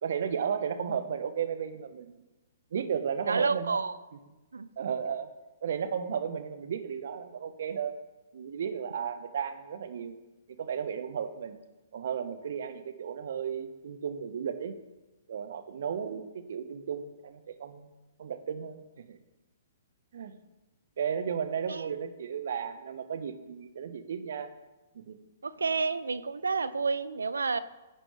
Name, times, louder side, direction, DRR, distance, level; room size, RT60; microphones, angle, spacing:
voice 1, 0.0-2.2 2.7-3.8 4.8-5.3 5.6-7.9 8.3-10.2 10.6-11.6 11.9-14.8 15.3-17.9 18.2-19.2 20.1-20.3 21.0-24.5 25.1-25.2, right 7 dB, 60° right, 10 dB, 1.1 m, -34 dB
voice 2, 3.2-3.9 4.5-4.7 21.7-21.9 25.4-27.6, right 4 dB, 75° right, 15 dB, 0.6 m, -30 dB
16.5 x 9.0 x 3.4 m, 1.1 s
figure-of-eight pair, 115°, 0 cm